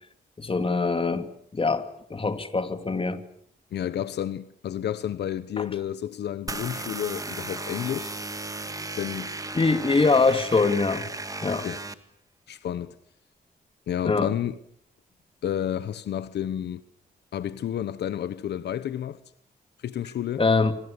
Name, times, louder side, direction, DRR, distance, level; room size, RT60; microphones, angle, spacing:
voice 1, 0.4-3.2 5.6-5.7 9.5-11.1 11.4-11.7 14.0-14.3 20.4-20.7, left 4 dB, 30° left, 2.7 m, -23 dB
voice 2, 3.7-8.2 9.0-9.3 11.5-11.8 12.5-12.9 13.9-14.6 15.4-16.8 17.3-19.2 19.8-20.4, left 10 dB, 85° left, 1.0 m, -30 dB
sound 1, 6.5-11.9, right 2 dB, 20° right, 1.9 m, -35 dB
27.5 x 25.5 x 6.9 m
cardioid pair, 85°, 17 cm